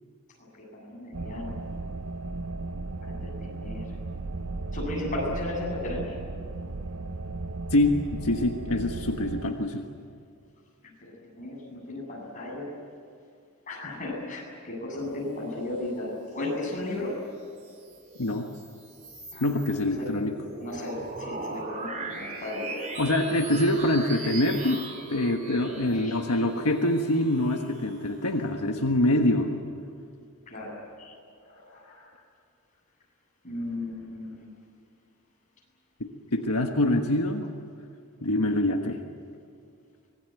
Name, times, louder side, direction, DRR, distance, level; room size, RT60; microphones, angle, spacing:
voice 1, 0.6-1.6 3.0-3.8 4.7-6.1 11.0-12.7 13.7-17.1 19.3-19.5 20.0-20.1 20.6-23.0 26.0-26.2 30.5-31.1 31.4-32.1 33.4-34.5, left 2 dB, 35° left, -2 dB, 7.8 m, -35 dB
sound 1, 1.1-9.5, right 2 dB, 85° right, 1.0 m, -35 dB
voice 2, 7.7-9.9 18.2-18.5 19.4-20.3 23.0-24.8 25.1-29.5 36.0-37.5 38.2-39.0, left 1 dB, 80° left, 3 dB, 1.4 m, -25 dB
sound 2, 17.4-28.3, right 3 dB, 35° right, 3.3 m, -40 dB
25.0 x 20.0 x 9.4 m, 2.3 s
head